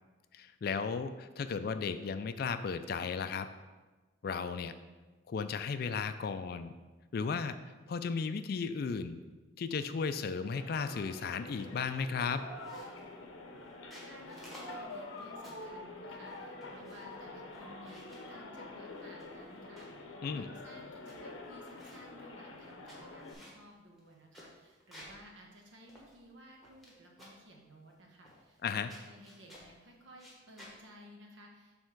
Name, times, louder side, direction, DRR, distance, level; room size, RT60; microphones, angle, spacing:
voice 1, 0.3-3.5 4.2-4.7 5.3-6.7 7.1-7.6 7.9-9.2 9.6-12.5 20.2-20.5 28.6-28.9, left 5 dB, 50° left, 11 dB, 0.3 m, -35 dB
sound 1, 10.5-23.3, left 2 dB, 85° left, 0.7 m, -47 dB
sound 2, 11.6-11.9 12.2-13.2 13.7-15.7 16.2-17.2 17.5-18.3 19.0-20.0 20.5-20.6 20.8-21.2 21.4-22.1 22.6-25.2 25.6-25.7 25.9-26.9 27.2-27.5 28.3-28.6 28.9-29.7 30.1-30.8, equal, ahead, 1.2 m, -55 dB
voice 2, 14.0-31.8, equal, 75° right, 0 dB, 1.1 m, -56 dB
6.6 x 3.5 x 4.5 m, 1.2 s
head